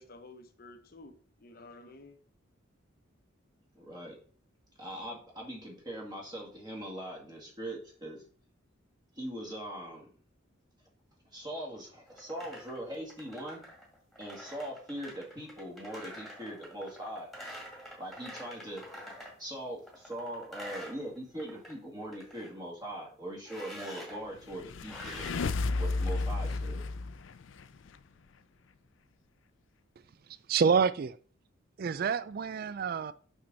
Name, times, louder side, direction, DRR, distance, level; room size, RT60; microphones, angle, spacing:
voice 1, 0.0-2.2, left 2 dB, 45° left, 0.9 m, -52 dB
voice 2, 3.7-4.2 4.8-8.2 9.2-10.1 11.3-13.6 14.2-17.3 18.0-18.8 19.4-25.3 25.8-26.9, right 1 dB, 20° right, 2.0 m, -41 dB
sound 1, 12.1-19.4 19.8-21.7 22.0-22.5 23.4-24.2 24.9-25.3, equal, ahead, 2.2 m, -47 dB
sound 2, 24.4-28.0, left 3 dB, 65° left, 0.5 m, -33 dB
voice 3, 30.5-31.2 31.8-33.1, right 6 dB, 45° right, 0.3 m, -27 dB
6.4 x 6.1 x 3.9 m
head